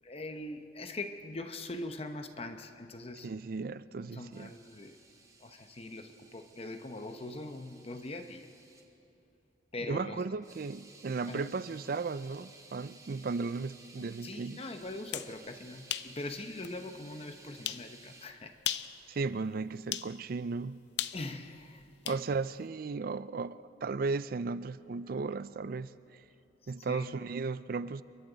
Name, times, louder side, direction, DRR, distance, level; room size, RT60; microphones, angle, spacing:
voice 1, 0.0-3.3 4.0-5.0 5.4-8.5 9.7-10.2 11.3-11.5 14.2-18.6 21.1-22.2 26.6-27.2, left 2 dB, 35° left, 0.9 m, -42 dB
voice 2, 3.2-4.5 9.9-14.6 19.1-20.8 22.1-25.9 26.7-28.0, right 4 dB, 55° right, 0.4 m, -35 dB
sound 1, 4.3-8.8 10.4-18.3, right 3 dB, 20° right, 2.0 m, -57 dB
sound 2, 14.9-15.3 15.9-16.1 16.6-16.7 17.6-17.9 18.6-18.9 19.9-20.1 21.0-22.2, left 11 dB, 75° left, 0.6 m, -36 dB
29.0 x 23.0 x 4.0 m
head